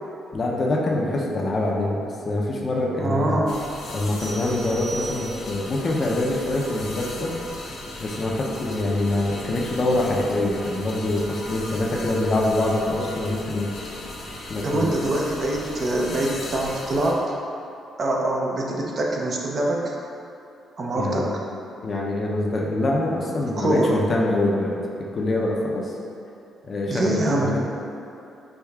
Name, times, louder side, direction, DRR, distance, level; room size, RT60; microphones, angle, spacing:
voice 1, 0.3-3.4 3.9-7.3 8.0-13.7 14.5-14.9 20.9-21.3 21.8-24.8 25.1-25.9 26.6-27.6, left 2 dB, 40° left, -2 dB, 0.5 m, -24 dB
voice 2, 2.9-3.6 14.6-17.2 18.0-19.9 20.8-21.3 23.6-23.9 26.9-27.5, right 1 dB, 45° right, -2 dB, 0.5 m, -24 dB
sound 1, 3.5-17.1, left 2 dB, 85° left, 0.7 m, -37 dB
sound 2, 4.2-5.7, right 3 dB, 65° right, 1.0 m, -38 dB
4.7 x 2.7 x 2.3 m, 2.6 s
cardioid pair, 90°, 0 cm